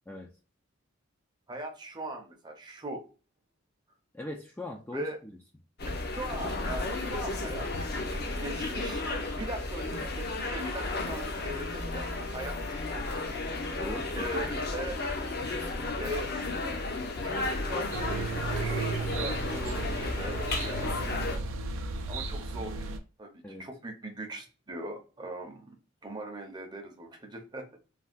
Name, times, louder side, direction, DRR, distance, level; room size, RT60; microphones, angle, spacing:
voice 1, 1.5-3.0 4.9-5.2 5.8-7.7 8.1-9.0 9.3-13.0 13.9-15.0 16.0-16.3 17.2-21.0 22.1-25.8 26.0-27.8, right 1 dB, 20° right, 2 dB, 0.6 m, -40 dB
voice 2, 4.1-5.1 13.8-14.4 23.4-23.6, left 1 dB, 10° left, 0 dB, 0.3 m, -40 dB
sound 1, 5.8-21.4, left 2 dB, 55° left, 0.7 m, -33 dB
sound 2, 17.9-23.0, right 3 dB, 70° right, 0.4 m, -34 dB
3.3 x 2.3 x 2.4 m, 0.35 s
head